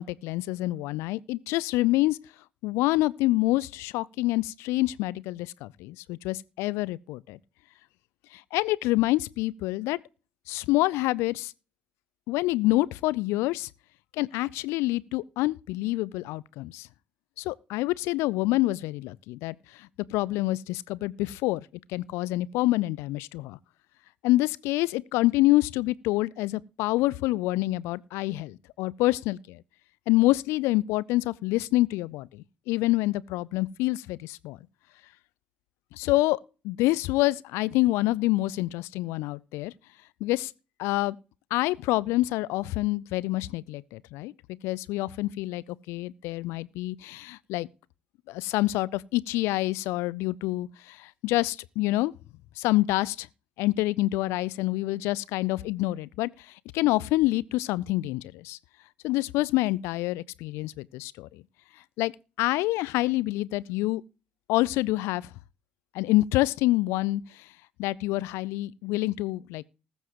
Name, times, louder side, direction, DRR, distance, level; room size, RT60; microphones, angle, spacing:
voice 1, 0.0-2.2 2.6-7.4 8.3-10.0 10.5-11.5 12.3-13.7 14.1-16.9 17.4-23.6 24.2-29.6 30.1-34.6 35.9-36.4 36.6-39.7 40.2-40.5 40.8-41.2 41.5-44.3 44.6-47.7 48.3-52.1 52.6-53.3 53.6-56.3 56.7-58.6 59.0-61.4 62.0-62.1 62.4-64.0 64.5-65.3 65.9-67.4 67.8-69.6, left 18 dB, 70° left, 0.4 m, -27 dB
20.0 x 7.3 x 3.0 m
figure-of-eight pair, 45°, 5 cm